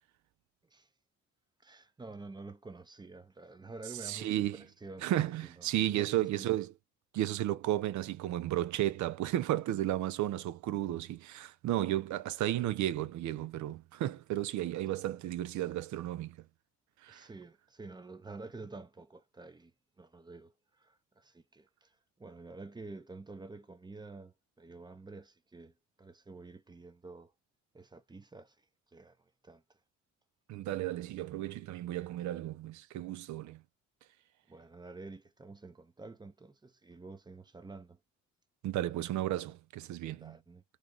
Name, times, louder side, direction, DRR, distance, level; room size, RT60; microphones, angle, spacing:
voice 1, 1.6-6.6 17.1-27.3 27.7-29.8 34.5-38.0 40.2-40.6, right 3 dB, 15° right, 0.6 m, -49 dB
voice 2, 4.0-4.6 5.0-6.7 7.1-16.4 17.0-17.3 30.5-33.6 38.6-40.4, right 13 dB, 75° right, 0.5 m, -33 dB
3.1 x 2.4 x 3.7 m
cardioid pair, 90°, 30 cm